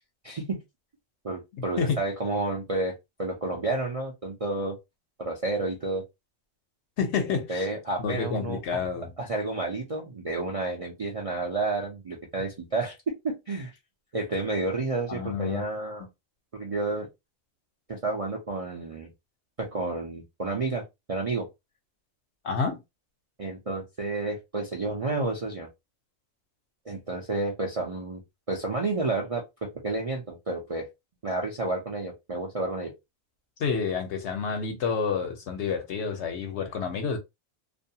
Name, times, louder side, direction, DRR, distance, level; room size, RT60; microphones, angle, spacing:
voice 1, 0.2-0.6 1.2-4.8 5.2-6.0 7.3-8.6 9.2-13.7 14.1-16.0 16.5-17.1 17.9-19.1 19.6-20.8 21.1-21.5 23.4-25.7 26.9-28.2 28.5-30.9 31.2-32.9, right 2 dB, 45° right, 0.4 m, -30 dB
voice 2, 7.0-7.7 8.0-9.1 15.1-15.6 22.4-22.8 33.6-37.2, left 5 dB, 65° left, 0.9 m, -29 dB
2.6 x 2.2 x 2.7 m
omnidirectional pair, 1.4 m